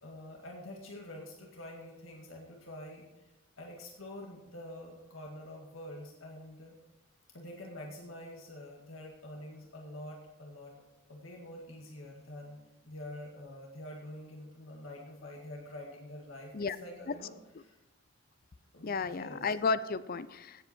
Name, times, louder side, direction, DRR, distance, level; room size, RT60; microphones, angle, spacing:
voice 1, 0.0-3.3 3.6-6.8 7.3-10.7 11.1-12.6 12.8-17.3 17.6-17.8 18.7-19.5, left 1 dB, 85° left, -1 dB, 2.0 m, -46 dB
voice 2, 18.8-20.6, left 4 dB, 45° left, 15 dB, 0.5 m, -33 dB
16.5 x 8.1 x 4.5 m, 1.0 s
head